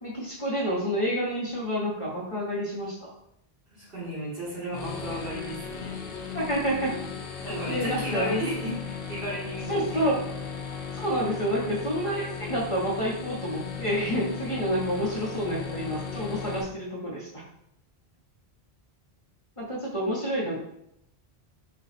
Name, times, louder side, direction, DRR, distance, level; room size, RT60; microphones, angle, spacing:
voice 1, 0.0-3.1 6.3-7.0 7.5-8.4 9.7-10.2 10.9-17.4 19.6-20.6, equal, 35° left, -5 dB, 0.9 m, -29 dB
voice 2, 3.7-6.0 7.4-10.1, equal, 65° right, -6 dB, 1.7 m, -34 dB
sound 1, 4.7-16.6, left 6 dB, 65° left, 0.9 m, -36 dB
4.3 x 2.3 x 4.1 m, 0.75 s
omnidirectional pair, 1.0 m